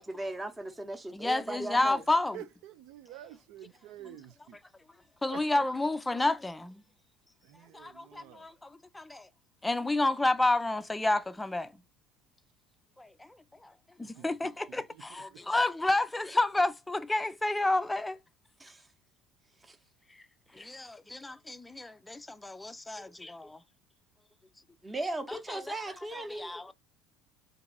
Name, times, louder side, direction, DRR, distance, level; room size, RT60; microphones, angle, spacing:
voice 1, 0.0-2.0 18.6-18.8 19.6-19.8 24.8-26.7, right 1 dB, 15° right, 0.8 m, -38 dB
voice 2, 1.1-2.4 5.2-6.8 7.7-9.3 9.6-11.7 13.0-13.3 13.6-13.7 14.0-18.2 20.5-23.6 25.3-25.6 26.3-26.7, left 2 dB, 10° left, 0.4 m, -30 dB
voice 3, 2.3-4.6 5.2-5.6 7.4-8.5 14.2-15.0 15.3-15.4, right 12 dB, 65° right, 0.5 m, -49 dB
2.9 x 2.6 x 3.7 m
hypercardioid pair, 70°, 0 cm